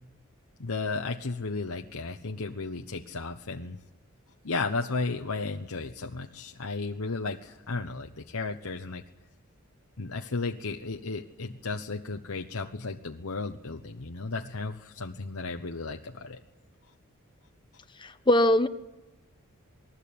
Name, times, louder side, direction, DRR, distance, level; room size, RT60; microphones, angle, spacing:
voice 1, 0.6-3.8 4.4-9.0 10.0-16.4, left 3 dB, 80° left, 3 dB, 1.1 m, -34 dB
voice 2, 18.0-18.7, left 1 dB, 20° left, 9 dB, 1.0 m, -21 dB
28.0 x 20.5 x 8.7 m, 1.0 s
head